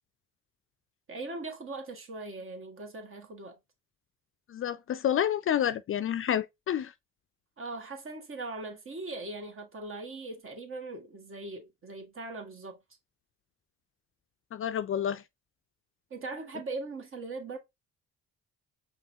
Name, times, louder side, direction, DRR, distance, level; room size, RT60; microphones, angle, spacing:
voice 1, 1.1-3.6 7.6-12.8 16.1-17.6, right 3 dB, 45° right, 1.6 m, -40 dB
voice 2, 4.5-6.9 14.5-15.2, left 9 dB, 45° left, 0.4 m, -29 dB
5.4 x 3.3 x 2.8 m
cardioid pair, 90°, 30 cm